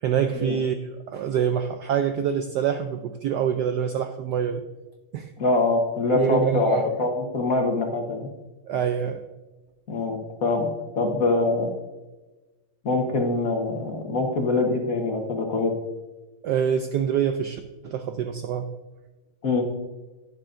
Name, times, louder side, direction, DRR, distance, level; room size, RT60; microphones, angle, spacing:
voice 1, 0.0-4.6 5.1-5.3 6.1-6.9 8.7-9.2 16.4-18.7, right 8 dB, 80° right, 7 dB, 0.9 m, -25 dB
voice 2, 5.4-8.3 9.9-11.7 12.8-15.7 19.4-19.6, left 3 dB, 45° left, 2 dB, 1.4 m, -24 dB
11.0 x 10.0 x 2.6 m, 1.1 s
omnidirectional pair, 2.3 m